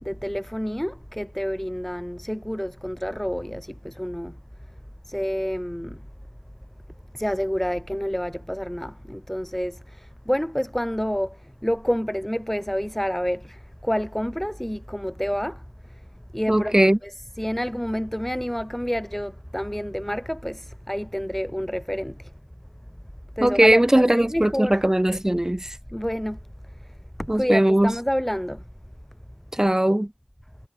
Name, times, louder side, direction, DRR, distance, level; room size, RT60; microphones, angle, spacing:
voice 1, 0.0-4.4 5.1-6.1 7.1-16.1 16.3-22.3 23.4-24.9 25.9-26.4 26.7-28.6, equal, 5° left, 0.9 m, -29 dB
voice 2, 16.5-17.0 23.4-25.8 27.3-27.9 29.5-30.1, right 1 dB, 20° right, 0.5 m, -19 dB
wide cardioid pair, 45°, 3 cm